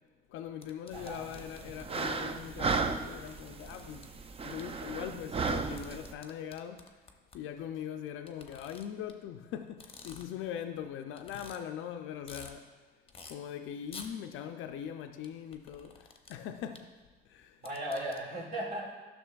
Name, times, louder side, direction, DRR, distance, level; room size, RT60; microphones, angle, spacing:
voice 1, 0.3-4.1 4.4-6.9 7.3-12.7 13.3-16.9 17.3-17.6, left 9 dB, 85° left, 0.4 m, -41 dB
sound 1, 0.6-2.0 2.7-2.8 3.0-4.0 4.6-4.7 5.5-7.4 8.3-9.1 9.7-10.5 10.8-10.9 11.2-11.6 12.0-12.5 13.1-13.3 13.9-14.1 15.2-16.3 16.7-16.8 17.4-18.2, left 4 dB, 30° left, 0.7 m, -50 dB
sound 2, 0.9-6.1, right 4 dB, 30° right, 0.4 m, -35 dB
voice 2, 0.9-1.7 17.6-18.8, right 1 dB, 55° right, 2.1 m, -37 dB
11.0 x 6.1 x 2.3 m
cardioid pair, 90°, 20 cm